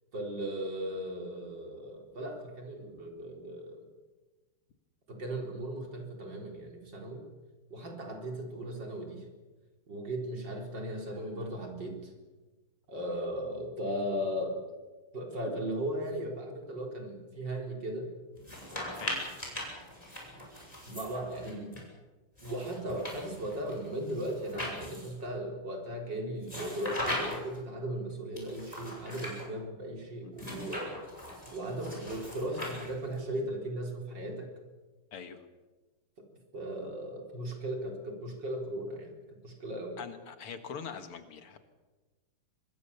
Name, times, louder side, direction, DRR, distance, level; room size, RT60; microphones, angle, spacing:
voice 1, 0.1-3.8 5.1-7.2 7.7-9.2 9.9-12.1 12.9-14.6 15.1-18.1 20.3-20.4 20.9-21.8 22.4-31.0 31.5-34.5 36.2-36.3 36.5-39.1 39.4-40.0, right 1 dB, 55° right, 2 dB, 4.7 m, -37 dB
sound 1, 18.4-21.8 22.4-25.3 26.4-27.6 28.4-29.4 30.4-33.2, left 1 dB, 15° left, 6.4 m, -40 dB
voice 2, 40.0-41.6, left 6 dB, 80° left, 8 dB, 2.6 m, -43 dB
25.0 x 20.5 x 7.0 m, 1.2 s
omnidirectional pair, 2.4 m